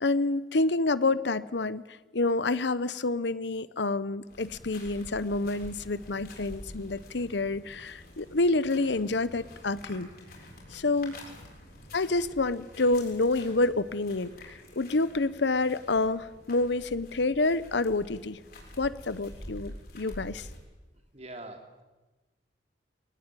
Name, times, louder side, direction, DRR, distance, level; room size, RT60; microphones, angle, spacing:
voice 1, 0.0-10.1 10.7-11.2 11.9-18.4 18.8-20.5, left 2 dB, 70° left, 16 dB, 0.9 m, -28 dB
sound 1, 4.3-20.6, left 1 dB, 55° left, 6.9 m, -48 dB
voice 2, 21.1-21.8, right 2 dB, 35° right, 5 dB, 3.0 m, -43 dB
23.0 x 19.5 x 9.1 m, 1.2 s
head